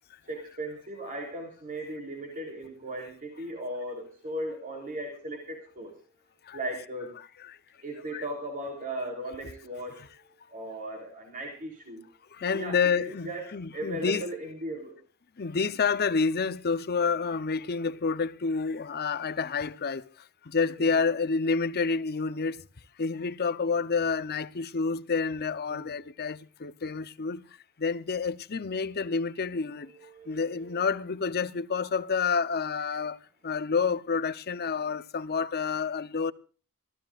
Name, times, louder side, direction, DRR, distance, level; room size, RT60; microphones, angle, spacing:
voice 1, 0.3-5.9 6.5-7.1 7.8-12.0 12.4-14.9 20.8-21.0 25.7-25.9 30.0-30.8, right 1 dB, 40° right, 3.3 m, -37 dB
voice 2, 12.4-14.3 15.4-20.0 20.5-22.6 23.0-27.4 27.8-29.9 30.3-33.2 33.4-36.3, left 5 dB, 45° left, 0.7 m, -29 dB
25.0 x 15.0 x 2.4 m
head